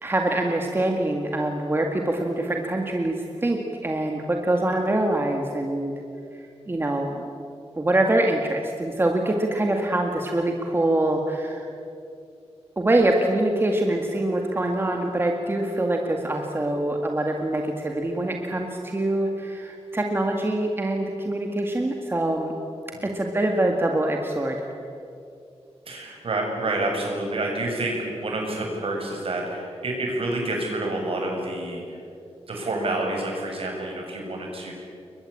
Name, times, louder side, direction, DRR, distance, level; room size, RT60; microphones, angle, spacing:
voice 1, 0.0-5.9 6.3-7.3 7.8-11.7 12.8-22.5 23.0-24.7, right 1 dB, 20° right, 2 dB, 1.9 m, -24 dB
voice 2, 25.9-32.0 32.5-34.7, right 2 dB, 60° right, 0 dB, 7.6 m, -28 dB
30.0 x 23.0 x 8.6 m, 2.6 s
wide cardioid pair, 180°, 11 cm